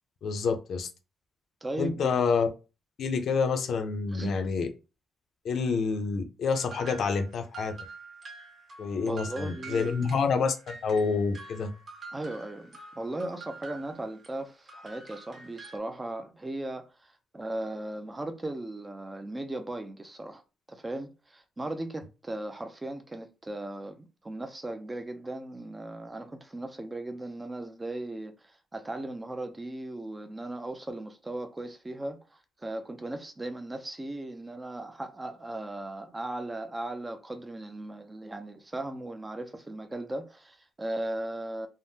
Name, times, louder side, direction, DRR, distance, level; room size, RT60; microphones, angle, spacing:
voice 1, 0.2-0.9 1.8-2.5 3.0-4.7 5.4-7.7 8.8-11.7, left 5 dB, 55° left, 0.5 m, -28 dB
voice 2, 1.6-2.2 4.1-4.4 9.1-10.1 12.1-20.4 20.7-41.7, right 1 dB, 15° right, 0.4 m, -37 dB
sound 1, 6.5-15.8, right 3 dB, 40° right, 1.0 m, -47 dB
3.4 x 2.1 x 2.7 m
cardioid pair, 145°, 0 cm